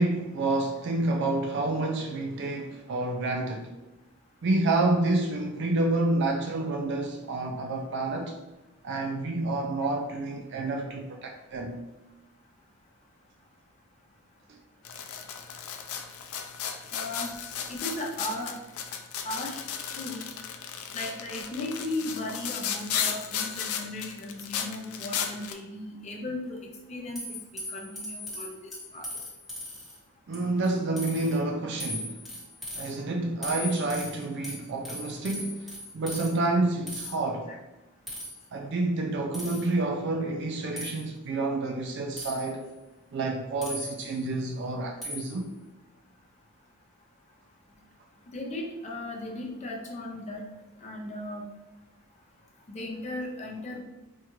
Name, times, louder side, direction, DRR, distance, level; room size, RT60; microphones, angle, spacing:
voice 1, 0.0-3.7 4.4-8.4 8.8-11.8 14.5-14.6 30.3-32.2 32.8-37.5 38.5-42.7 43.1-45.5, right 2 dB, 55° right, 0.3 m, -29 dB
sound 1, 14.9-25.5, left 8 dB, 85° left, 0.4 m, -35 dB
voice 2, 16.9-17.3 17.7-18.6 19.2-19.6 19.9-20.2 20.9-27.4 27.7-29.1 37.5-37.6 48.3-50.4 50.8-51.5 52.7-53.8, left 2 dB, 30° left, 0.5 m, -36 dB
sound 2, 27.2-30.0 30.3-30.7 31.0-31.4 31.8-32.9 33.4-36.3 36.9-37.1 38.1-38.4 39.3-39.7 40.8-41.0 42.2-42.6 43.6-44.2 45.0-45.4, left 1 dB, ahead, 0.9 m, -38 dB
4.5 x 2.3 x 3.0 m
head